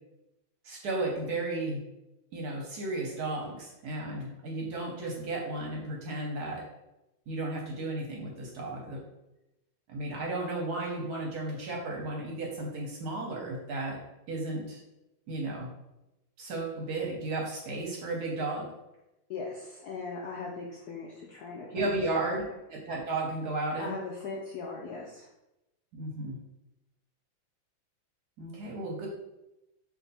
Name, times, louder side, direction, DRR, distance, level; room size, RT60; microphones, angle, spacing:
voice 1, 0.6-1.8 2.3-6.6 7.3-9.0 9.9-14.0 14.3-14.8 15.3-15.7 16.4-18.7 21.7-22.4 22.7-24.0 25.9-26.4 28.4-29.1, right 2 dB, 65° right, -1 dB, 1.1 m, -34 dB
voice 2, 19.3-22.4 23.8-25.3, left 4 dB, 75° left, -2 dB, 0.9 m, -39 dB
3.5 x 2.7 x 4.0 m, 0.93 s
omnidirectional pair, 2.2 m